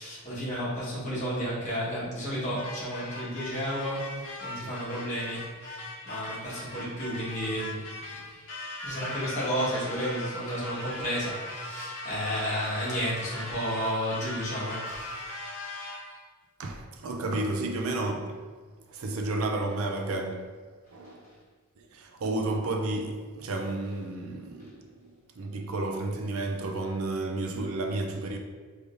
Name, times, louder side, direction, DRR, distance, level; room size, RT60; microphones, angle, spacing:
voice 1, 0.0-8.2 8.8-15.2, equal, 35° left, 1.4 m, -32 dB
sound 1, 2.6-16.2, left 1 dB, 65° left, 1.0 m, -39 dB
voice 2, 16.6-18.4 18.9-20.5 20.9-21.3 21.8-28.4, right 2 dB, 70° right, 0.5 m, -32 dB
4.9 x 3.3 x 2.6 m
head